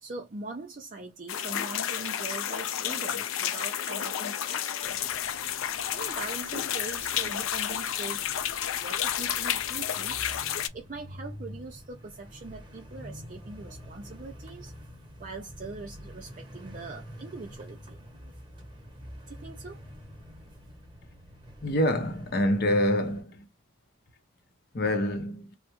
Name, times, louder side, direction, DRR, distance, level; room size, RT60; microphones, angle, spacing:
voice 1, 0.0-5.3 5.9-8.2 8.8-10.2 10.7-14.7 15.2-18.0 19.3-19.8, right 3 dB, 40° right, 0.4 m, -42 dB
sound 1, 1.3-10.7, left 10 dB, 80° left, 0.4 m, -31 dB
sound 2, 4.8-23.2, equal, 25° right, 0.9 m, -47 dB
voice 2, 21.6-23.5 24.7-25.6, left 1 dB, 50° left, 0.7 m, -26 dB
3.4 x 2.1 x 2.9 m
head